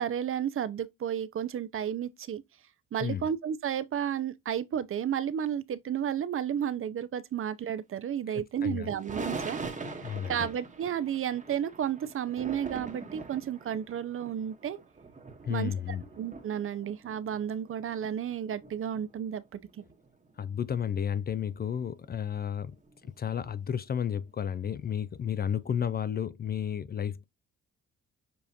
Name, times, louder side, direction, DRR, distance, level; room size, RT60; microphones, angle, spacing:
voice 1, 0.0-2.4 2.9-9.6 10.0-14.8 15.5-15.7 16.2-19.6, right 9 dB, 45° right, 0.5 m, -32 dB
voice 2, 8.3-8.9 9.9-10.5 15.4-16.0 20.4-22.8 23.0-27.2, left 8 dB, 35° left, 0.4 m, -32 dB
sound 1, 9.0-20.4 20.7-20.8 21.0-21.1 21.4-22.1 22.8-23.1 23.4-23.6 24.1-24.3 24.9-25.0, right 4 dB, 25° right, 1.1 m, -43 dB
6.9 x 2.5 x 2.7 m
cardioid pair, 90°, 30 cm